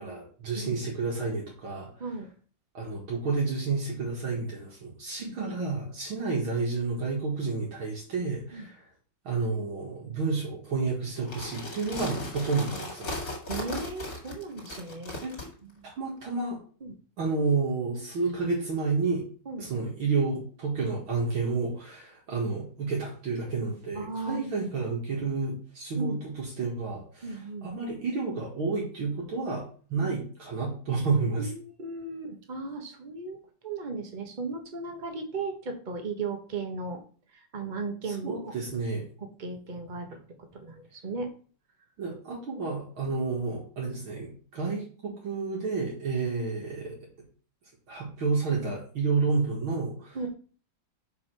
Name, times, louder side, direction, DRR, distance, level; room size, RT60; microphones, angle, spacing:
voice 1, 0.0-1.9 2.7-8.8 9.2-13.2 15.2-15.3 15.8-16.6 17.2-19.2 19.6-31.5 38.1-39.0 42.0-47.0 47.9-50.2, right 4 dB, 75° right, -3 dB, 2.6 m, -30 dB
voice 2, 5.2-5.6 8.5-8.7 13.5-15.1 15.6-15.7 16.8-16.9 19.5-19.7 23.9-24.7 25.9-26.2 27.2-27.7 29.9-30.1 31.4-33.4 33.6-37.0 37.5-38.5 39.2-41.3 50.1-50.3, right 3 dB, 30° right, 5 dB, 1.1 m, -36 dB
sound 1, 11.2-15.5, left 2 dB, 50° left, 2.5 m, -37 dB
5.3 x 5.1 x 6.0 m, 0.41 s
omnidirectional pair, 2.3 m